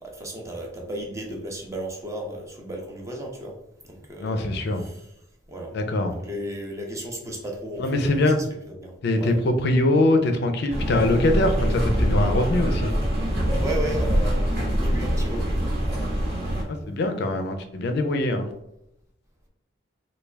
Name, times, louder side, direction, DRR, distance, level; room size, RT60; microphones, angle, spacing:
voice 1, 0.0-3.6 3.8-5.1 5.5-5.7 6.1-9.4 13.5-16.2, right 1 dB, 15° right, 0 dB, 0.6 m, -35 dB
voice 2, 4.2-4.8 5.7-6.1 7.8-8.4 9.0-12.9 16.9-18.5, left 1 dB, 55° left, 6 dB, 0.4 m, -22 dB
sound 1, 10.7-16.6, equal, 55° right, 1.0 m, -24 dB
3.3 x 2.3 x 3.3 m, 0.80 s
head